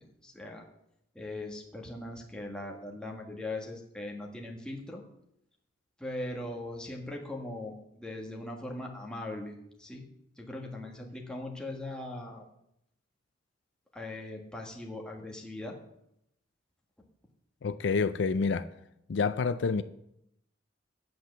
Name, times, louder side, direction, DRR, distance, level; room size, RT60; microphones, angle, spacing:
voice 1, 0.2-0.6 1.1-5.0 6.0-10.0 10.4-12.5 13.9-15.8, left 1 dB, 5° left, -1 dB, 1.5 m, -40 dB
voice 2, 17.6-18.7 19.1-19.8, left 5 dB, 65° left, 12 dB, 0.4 m, -28 dB
8.7 x 7.8 x 6.8 m, 0.79 s
head